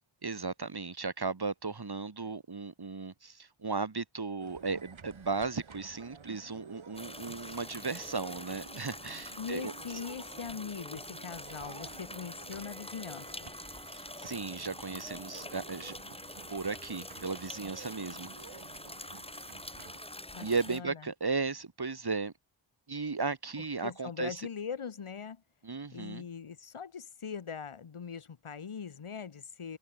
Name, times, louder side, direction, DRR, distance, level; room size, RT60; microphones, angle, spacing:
voice 1, 0.2-9.7 13.9-16.0 16.5-18.5 20.4-22.3 22.9-24.5 25.6-26.2, right 4 dB, 50° right, 6.9 m, -36 dB
sound 1, 4.4-20.0, right 6 dB, 75° right, 4.2 m, -52 dB
sound 2, 7.0-20.8, left 1 dB, 10° left, 7.3 m, -45 dB
voice 2, 9.4-13.5 20.3-21.0 23.6-25.4 25.9-29.8, left 6 dB, 85° left, 3.5 m, -41 dB
wide cardioid pair, 100°, 49 cm